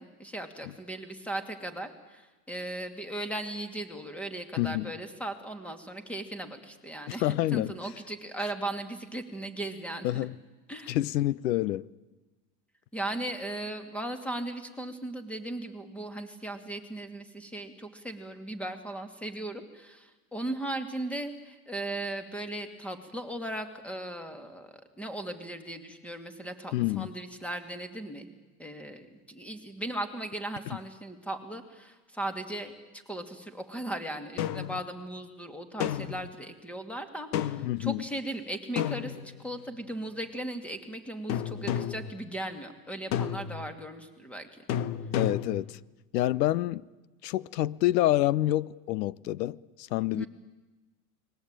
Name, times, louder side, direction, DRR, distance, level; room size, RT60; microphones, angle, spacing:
voice 1, 0.0-10.1 10.7-11.0 12.9-28.3 28.6-39.2 39.4-44.6 50.1-50.3, right 1 dB, 5° left, 2.5 m, -37 dB
voice 2, 4.6-4.9 7.1-7.7 10.0-10.3 10.9-11.9 26.7-27.1 37.6-38.0 45.1-45.8 46.1-46.8 47.2-50.3, left 15 dB, 85° left, 0.9 m, -27 dB
sound 1, 34.4-34.8 35.8-36.3 37.3-37.8 38.8-39.6 41.3-42.1 43.1-43.7 44.7-45.7, left 10 dB, 60° left, 1.5 m, -31 dB
30.0 x 21.0 x 9.0 m
supercardioid pair, 140°, 48 cm